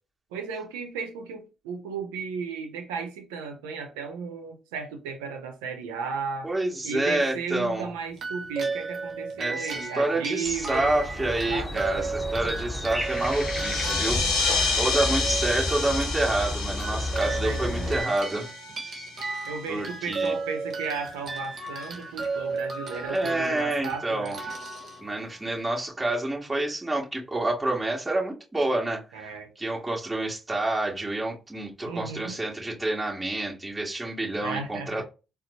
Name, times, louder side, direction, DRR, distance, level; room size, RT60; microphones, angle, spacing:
voice 1, 0.3-6.5 6.8-10.9 11.2-12.1 14.7-14.9 17.2-18.0 19.4-24.3 29.1-29.5 31.8-32.4 34.4-35.0, right 5 dB, 90° right, 0.7 m, -35 dB
voice 2, 6.4-7.9 9.4-18.5 18.8-19.1 19.7-20.3 22.9-24.4 25.0-35.0, right 2 dB, 20° right, 1.8 m, -28 dB
sound 1, 8.1-25.6, right 3 dB, 55° right, 1.0 m, -35 dB
sound 2, 10.4-18.0, left 1 dB, 10° left, 0.9 m, -32 dB
sound 3, 13.0-19.1, left 4 dB, 85° left, 0.6 m, -29 dB
4.2 x 2.1 x 2.7 m
hypercardioid pair, 55°, 0 cm